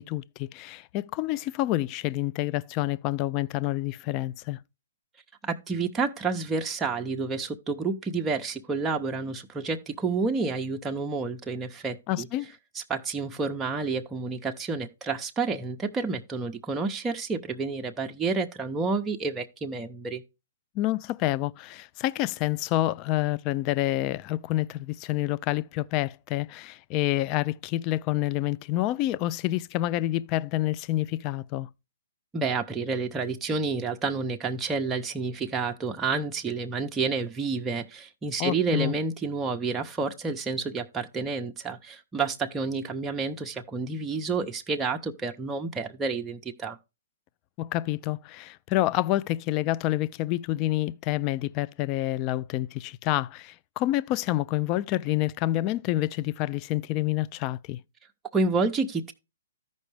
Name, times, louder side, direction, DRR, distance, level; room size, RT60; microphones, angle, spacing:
voice 1, 0.0-4.6 12.1-12.5 20.8-31.7 38.4-38.9 47.6-57.8, left 15 dB, 30° left, 0.4 m, -28 dB
voice 2, 5.4-12.3 12.7-20.2 32.3-46.8 58.3-59.1, right 4 dB, 15° right, 0.7 m, -29 dB
13.5 x 5.3 x 3.3 m
hypercardioid pair, 130°, 0 cm